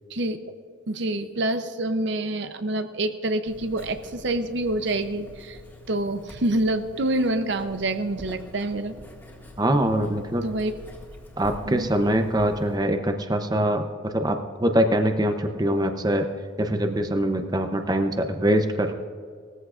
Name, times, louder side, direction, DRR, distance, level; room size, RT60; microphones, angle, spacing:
voice 1, 0.1-0.5 0.9-5.6 5.9-8.9 10.4-10.7 11.7-11.9, right 1 dB, 60° right, 9 dB, 0.7 m, -27 dB
Writing, 3.5-12.8, left 1 dB, 10° left, 1.9 m, -46 dB
voice 2, 9.6-10.5 11.4-16.3 16.6-18.9, right 1 dB, 20° right, 6 dB, 0.7 m, -23 dB
19.5 x 14.5 x 2.5 m, 2.1 s
head